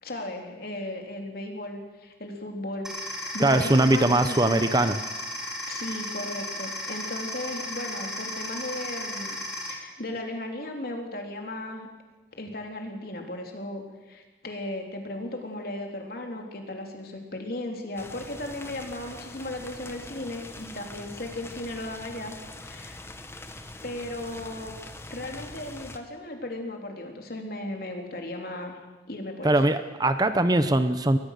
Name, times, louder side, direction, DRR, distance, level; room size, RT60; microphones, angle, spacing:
voice 1, 0.0-4.7 5.7-9.4 9.7-11.9 12.3-23.0 23.8-24.7 25.1-28.8 29.1-29.6, left 1 dB, 55° left, 3 dB, 3.6 m, -36 dB
sound 1, 2.8-9.7, left 1 dB, 5° right, 3.6 m, -35 dB
voice 2, 3.4-5.0 29.4-31.2, right 1 dB, 20° right, 10 dB, 0.9 m, -21 dB
sound 2, 18.0-26.0, left 2 dB, 15° left, 1.4 m, -43 dB
23.0 x 19.5 x 6.8 m, 1.2 s
head